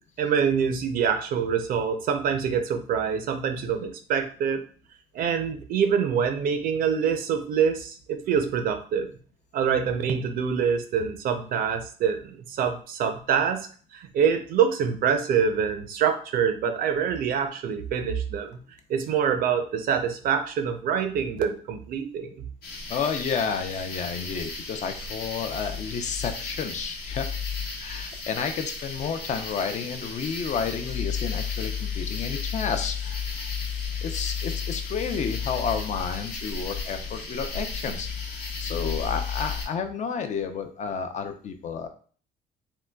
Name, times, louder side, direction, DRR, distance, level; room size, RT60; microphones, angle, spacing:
voice 1, 0.2-4.6 5.1-9.1 9.5-18.6 18.9-22.5, right 7 dB, 60° right, 7 dB, 0.5 m, -25 dB
sound 1, 22.6-39.7, left 5 dB, 65° left, 1.1 m, -33 dB
voice 2, 22.9-27.3 27.8-33.5 34.0-41.9, left 6 dB, 45° left, 6 dB, 0.4 m, -31 dB
3.7 x 2.2 x 2.2 m, 0.43 s
cardioid pair, 110°, 17 cm